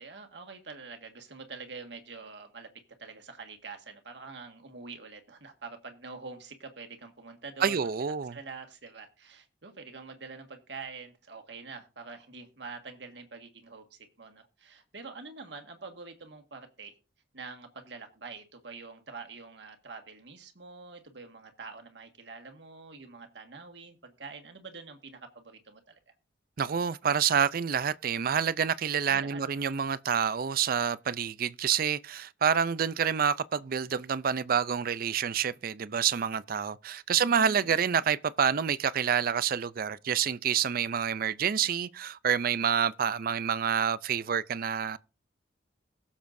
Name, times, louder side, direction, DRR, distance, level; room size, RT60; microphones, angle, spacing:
voice 1, 0.0-2.7 3.0-16.9 17.3-26.0 29.1-29.8 37.1-38.0, right 4 dB, 70° right, 1.7 m, -46 dB
voice 2, 7.6-8.4 26.6-45.0, right 7 dB, 50° right, 0.4 m, -28 dB
21.5 x 7.2 x 2.6 m
head